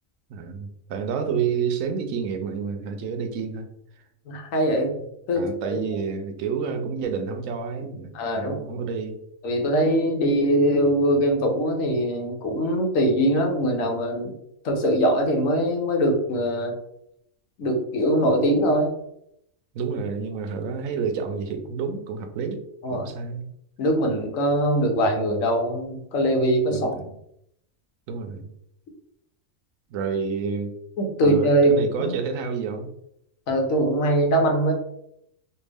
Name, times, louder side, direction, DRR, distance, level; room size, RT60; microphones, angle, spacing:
voice 1, 0.3-3.7 5.3-9.2 19.7-22.6 22.9-23.4 26.7-27.1 28.1-28.5 29.9-30.7 31.2-32.9, right 6 dB, 80° right, 7 dB, 1.0 m, -29 dB
voice 2, 4.3-4.9 5.3-5.8 8.1-8.6 9.4-14.3 14.6-16.7 17.6-18.9 22.8-23.1 23.8-26.9 31.0-32.1 33.5-34.7, right 1 dB, 80° left, 2 dB, 1.2 m, -22 dB
3.4 x 2.4 x 3.3 m, 0.76 s
omnidirectional pair, 1.4 m